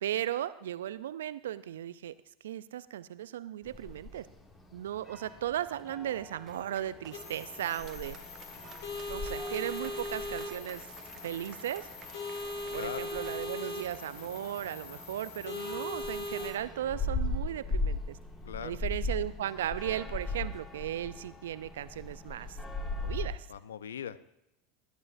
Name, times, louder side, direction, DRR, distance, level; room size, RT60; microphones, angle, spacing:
voice 1, 0.0-2.1 2.4-4.3 4.7-8.2 9.1-10.9 11.2-11.9 12.7-18.2 18.6-22.6 23.0-23.5, right 11 dB, 75° right, 16 dB, 0.5 m, -36 dB
sound 1, 3.6-23.3, left 2 dB, 25° left, 2.2 m, -40 dB
Applause, 6.5-15.8, right 8 dB, 40° right, 1.1 m, -54 dB
sound 2, 7.1-16.5, left 2 dB, 60° left, 2.4 m, -40 dB
voice 2, 12.7-13.1 18.4-18.7 23.5-24.2, left 9 dB, 80° left, 17 dB, 0.5 m, -40 dB
19.5 x 11.0 x 2.6 m, 0.82 s
hypercardioid pair, 85°, 0 cm